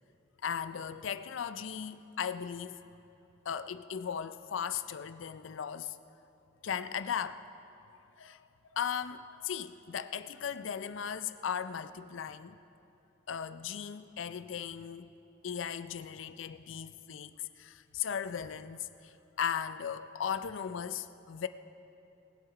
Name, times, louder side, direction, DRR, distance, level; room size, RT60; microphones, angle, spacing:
voice 1, 0.4-2.8 3.5-6.0 6.6-7.4 7.9-8.4 8.7-12.6 13.3-15.1 15.4-21.5, left 8 dB, 75° left, 0.4 m, -37 dB
19.5 x 8.0 x 4.8 m
head